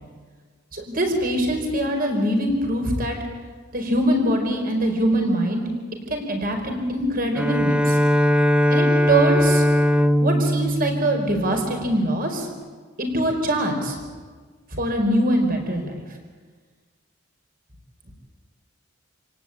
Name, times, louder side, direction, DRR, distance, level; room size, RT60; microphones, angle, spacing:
voice 1, 0.7-3.2 3.7-5.6 6.1-8.0 8.7-9.6 10.2-12.5 13.0-14.0 14.7-16.0, right 1 dB, 45° right, 3 dB, 4.9 m, -23 dB
Bowed string instrument, 7.3-12.0, equal, 5° right, 0.8 m, -20 dB
28.0 x 18.0 x 9.0 m, 1.5 s
head